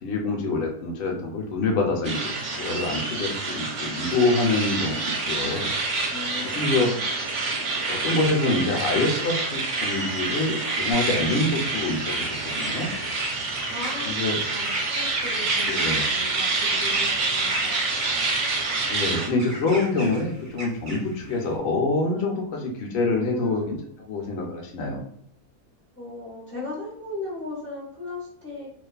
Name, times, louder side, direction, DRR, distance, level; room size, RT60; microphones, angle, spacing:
voice 1, 0.0-5.7 6.4-6.9 7.9-12.9 14.1-14.4 15.6-16.0 18.8-23.8 24.1-25.1, left 2 dB, 75° left, 0 dB, 0.6 m, -26 dB
sound 1, 2.0-19.3, right 3 dB, 60° right, 0.8 m, -27 dB
voice 2, 6.1-7.0 13.7-17.9 23.1-23.8 25.9-28.7, left 2 dB, 20° left, -5 dB, 0.3 m, -37 dB
sound 2, 10.9-21.6, right 1 dB, 90° right, 0.4 m, -35 dB
2.4 x 2.3 x 2.2 m, 0.68 s
omnidirectional pair, 1.7 m